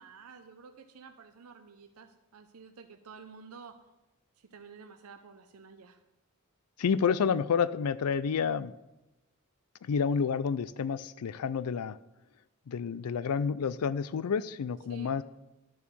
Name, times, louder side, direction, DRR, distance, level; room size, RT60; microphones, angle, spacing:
voice 1, 0.0-3.8 4.4-6.0 14.9-15.1, right 5 dB, 80° right, 7 dB, 0.6 m, -51 dB
voice 2, 6.8-8.7 9.8-12.0 12.7-15.2, left 6 dB, 85° left, 17 dB, 0.4 m, -29 dB
11.0 x 4.6 x 6.9 m, 0.98 s
head